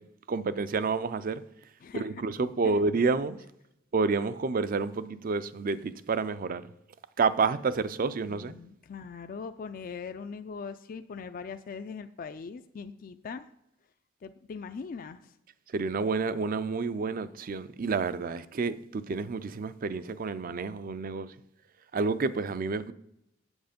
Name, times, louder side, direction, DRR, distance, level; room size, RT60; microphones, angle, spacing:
voice 1, 0.0-1.4 1.9-3.4 3.9-6.7 7.2-8.6 15.7-21.3 21.9-22.9, right 4 dB, 45° right, 0.4 m, -29 dB
voice 2, 8.2-13.5 14.2-15.4, left 5 dB, 45° left, 0.4 m, -41 dB
8.1 x 7.7 x 5.1 m
head